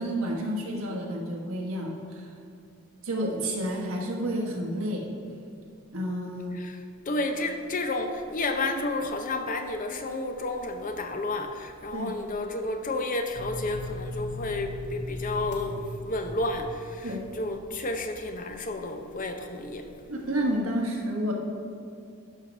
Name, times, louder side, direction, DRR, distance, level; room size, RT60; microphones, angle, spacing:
voice 1, 0.0-2.3 3.0-5.0 5.9-6.6 11.9-12.1 17.0-17.2 20.1-21.3, equal, 65° right, 0 dB, 1.4 m, -30 dB
voice 2, 6.5-19.9, left 2 dB, 35° left, 6 dB, 0.6 m, -31 dB
sound 1, 13.3-18.0, left 2 dB, 80° left, 1.2 m, -39 dB
12.5 x 4.6 x 5.3 m, 2.3 s
head